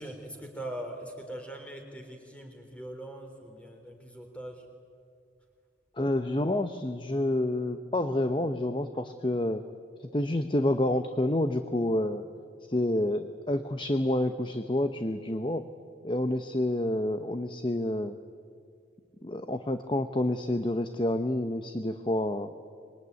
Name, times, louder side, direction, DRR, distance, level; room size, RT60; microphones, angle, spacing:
voice 1, 0.0-4.7, right 1 dB, 5° left, 3 dB, 3.6 m, -41 dB
voice 2, 6.0-9.6 10.0-12.2 12.7-15.7 16.0-18.2 19.2-22.5, left 1 dB, 25° left, 9 dB, 0.8 m, -28 dB
25.5 x 22.5 x 9.7 m, 2.2 s
head